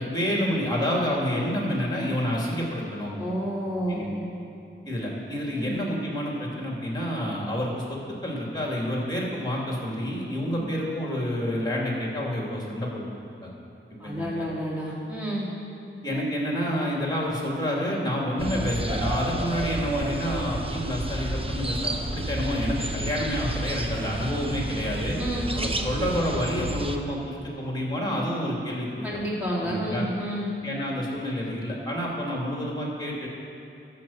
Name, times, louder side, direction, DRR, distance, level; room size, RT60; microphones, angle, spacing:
voice 1, 0.0-3.2 3.9-4.1 4.8-13.0 13.4-13.5 14.0-14.5 16.0-25.2 25.5-29.1 29.6-30.0 30.6-33.3, equal, 20° left, -3 dB, 2.7 m, -28 dB
voice 2, 3.2-4.1 5.5-5.8 10.5-10.6 14.0-15.5 25.2-25.5 29.0-30.5, equal, 5° right, -6 dB, 3.2 m, -30 dB
sound 1, 18.4-27.0, right 1 dB, 25° right, 0.8 m, -31 dB
11.5 x 7.5 x 7.4 m, 2.8 s
wide cardioid pair, 100°, 21 cm